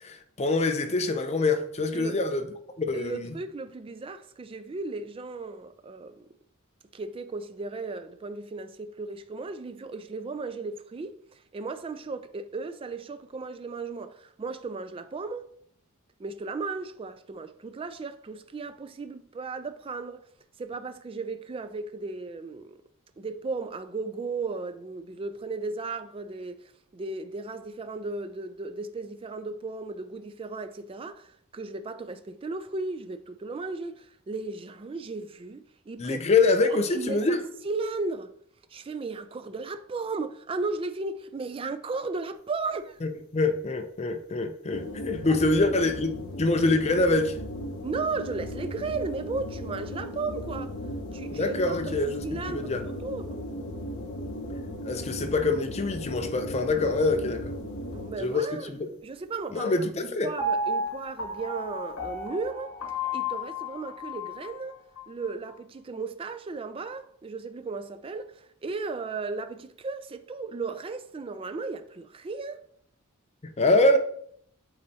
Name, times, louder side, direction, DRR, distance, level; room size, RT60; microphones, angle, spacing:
voice 1, 0.0-2.4 2.8-3.3 36.0-37.4 43.0-47.3 51.3-52.8 54.8-57.5 58.2-58.9 59.5-60.3 73.6-74.0, left 2 dB, 30° left, 0.5 m, -25 dB
voice 2, 2.9-6.3 6.9-11.2 11.5-15.5 16.2-20.2 20.6-22.8 23.2-26.6 26.9-36.4 36.7-38.3 38.7-43.0 45.3-45.4 47.8-50.7 51.1-52.0 52.2-52.8 53.0-53.4 57.9-62.7 63.1-64.8 65.1-72.7, right 3 dB, 25° right, 0.3 m, -35 dB
sound 1, 44.7-58.4, equal, 55° left, 0.8 m, -37 dB
Piano, 60.4-64.5 65.0-65.1, left 1 dB, 75° left, 1.1 m, -32 dB
8.6 x 4.0 x 2.8 m
head